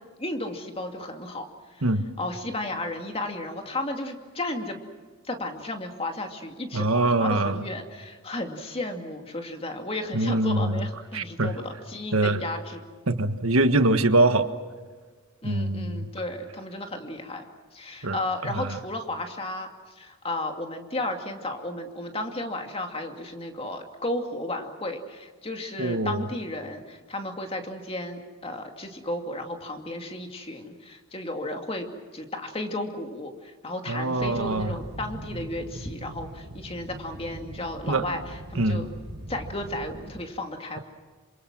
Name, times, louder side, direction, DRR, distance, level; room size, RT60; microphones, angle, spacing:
voice 1, 0.2-1.8 2.2-4.8 5.3-12.8 15.4-17.4 17.7-19.7 20.0-31.9 32.1-38.9 39.3-40.8, left 1 dB, 25° left, 4 dB, 2.4 m, -34 dB
voice 2, 6.7-7.6 10.1-10.8 11.1-11.5 12.1-12.4 13.1-14.5 15.4-16.1 18.0-18.8 25.8-26.3 33.9-34.7 37.9-38.0 38.6-38.8, right 2 dB, 75° right, 9 dB, 1.5 m, -23 dB
sound 1, 34.2-40.2, right 1 dB, 50° right, 1.5 m, -41 dB
28.0 x 26.0 x 6.2 m, 1.5 s
head